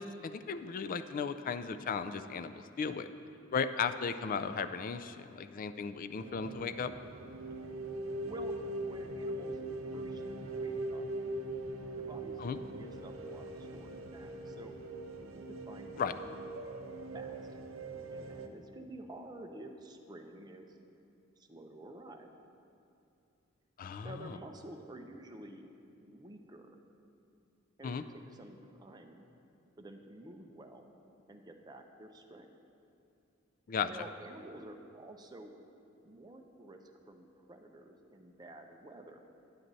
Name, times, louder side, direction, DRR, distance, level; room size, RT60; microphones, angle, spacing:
voice 1, 0.0-3.1 3.5-6.9 12.4-12.6 16.0-16.1 23.8-24.4 27.8-28.0 33.7-33.9, left 6 dB, 45° left, 11 dB, 0.3 m, -36 dB
sound 1, 6.2-18.5, right 2 dB, 85° right, 0.6 m, -41 dB
voice 2, 8.2-9.6 9.9-10.2 10.5-11.1 11.9-14.7 15.2-16.4 17.1-17.5 18.1-20.8 21.4-22.3 24.0-25.7 26.0-26.8 27.8-29.3 29.8-30.9 31.3-32.5 33.9-35.5 36.0-39.2, right 1 dB, 20° right, 3 dB, 0.5 m, -50 dB
9.8 x 7.6 x 4.0 m, 2.6 s
head